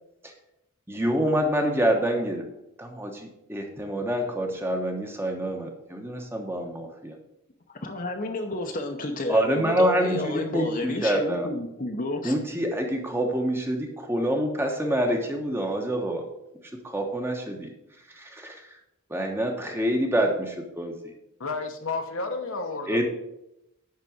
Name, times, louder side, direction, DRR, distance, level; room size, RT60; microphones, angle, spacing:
voice 1, 0.9-2.4 2.8-7.2 9.3-11.5 12.2-16.2 16.8-17.7 18.1-18.8 19.1-21.1 22.9-23.1, equal, 10° right, 1.0 m, -26 dB
voice 2, 7.7-12.3, left 1 dB, 40° left, 0.8 m, -31 dB
voice 3, 21.4-23.1, left 3 dB, 70° left, 1.2 m, -31 dB
10.5 x 4.1 x 6.2 m
head